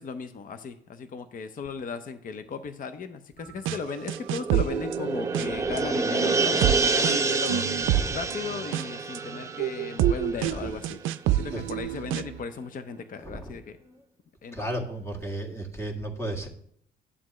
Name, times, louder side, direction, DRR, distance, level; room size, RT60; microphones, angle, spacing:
voice 1, 0.0-7.7 8.1-11.0 11.3-13.8 14.4-14.7, left 5 dB, 45° left, 9 dB, 0.6 m, -36 dB
sound 1, 3.7-3.8 4.1-5.8 6.2-12.4, right 12 dB, 90° right, 0.4 m, -28 dB
sound 2, 3.8-10.8 11.1-11.2, right 4 dB, 15° right, 0.7 m, -28 dB
voice 2, 10.4-10.7 11.5-11.6 13.2-13.6 13.9-14.0 14.5-16.5, right 1 dB, 15° left, -1 dB, 1.9 m, -34 dB
11.0 x 7.4 x 3.1 m, 0.68 s
cardioid pair, 90°, 20 cm